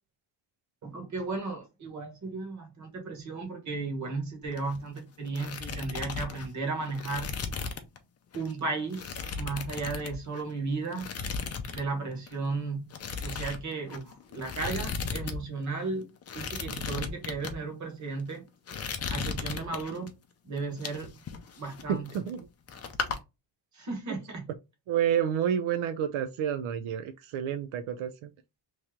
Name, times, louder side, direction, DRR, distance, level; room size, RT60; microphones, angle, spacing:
voice 1, 0.8-7.4 8.3-11.1 11.7-12.9 13.2-18.5 19.1-20.1 20.4-21.1 21.6-22.2 23.7-24.5, right 3 dB, 35° right, 1.3 m, -35 dB
sound 1, 4.4-5.0 5.2-8.0 8.3-8.5 8.9-10.5 10.9-11.9 12.1-12.4 12.9-15.4 15.6-15.7 16.2-17.5 18.1-18.3 18.7-20.1 20.6-22.4 22.7-23.2, left 5 dB, 35° left, 0.5 m, -36 dB
voice 2, 21.9-22.4 24.9-28.3, right 9 dB, 85° right, 0.6 m, -29 dB
3.2 x 2.8 x 3.5 m
cardioid pair, 180°, 47 cm